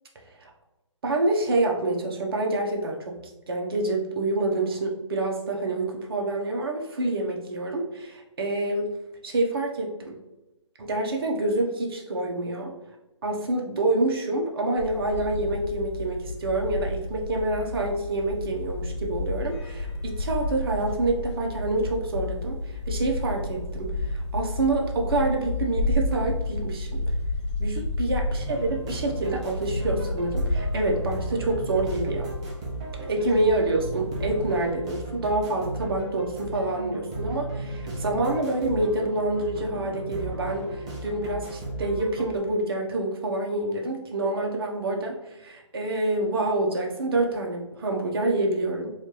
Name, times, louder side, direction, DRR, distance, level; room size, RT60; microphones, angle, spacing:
voice 1, 1.0-3.2 3.5-8.9 9.2-10.1 10.8-12.7 13.2-27.0 27.6-32.3 33.0-48.9, right 2 dB, 50° right, 1 dB, 0.8 m, -27 dB
sound 1, 14.8-34.7, left 1 dB, 65° left, 1.0 m, -31 dB
sound 2, 28.4-42.4, right 2 dB, 10° right, 0.4 m, -35 dB
4.2 x 2.4 x 3.0 m, 0.99 s
hypercardioid pair, 155°, 16 cm